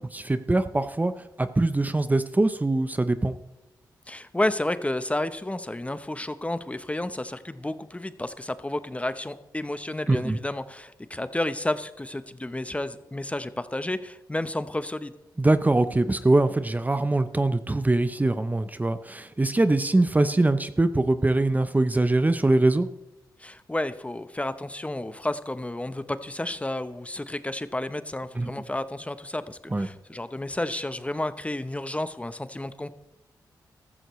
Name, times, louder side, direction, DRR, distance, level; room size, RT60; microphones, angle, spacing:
voice 1, 0.1-1.1 1.4-3.4 10.1-10.4 15.4-22.9 28.4-28.5 29.7-29.9, right 2 dB, 20° right, 11 dB, 0.7 m, -23 dB
voice 2, 4.1-15.1 23.4-32.9, left 1 dB, 15° left, 12 dB, 0.8 m, -31 dB
15.0 x 14.0 x 3.1 m, 0.98 s
cardioid pair, 60°, 8 cm